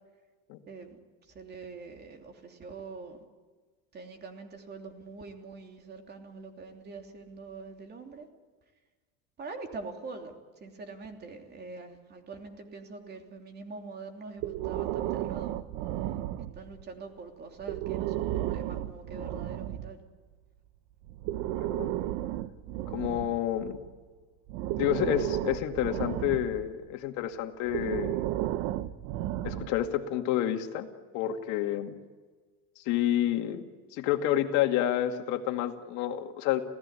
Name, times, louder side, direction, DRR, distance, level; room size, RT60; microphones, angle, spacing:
voice 1, 0.7-3.2 3.9-8.3 9.4-15.5 16.5-20.0, right 4 dB, 30° right, 4 dB, 3.1 m, -44 dB
Breathing, 14.4-16.8 17.6-19.9 21.0-23.9 24.5-26.7 27.6-29.9, right 14 dB, 70° right, 1.1 m, -33 dB
voice 2, 21.6-21.9 22.9-23.8 24.8-28.2 29.4-30.9 31.1-31.9 32.9-33.6 33.9-36.6, left 12 dB, 60° left, 6 dB, 2.2 m, -29 dB
27.5 x 16.5 x 9.8 m, 1.4 s
cardioid pair, 135°, 32 cm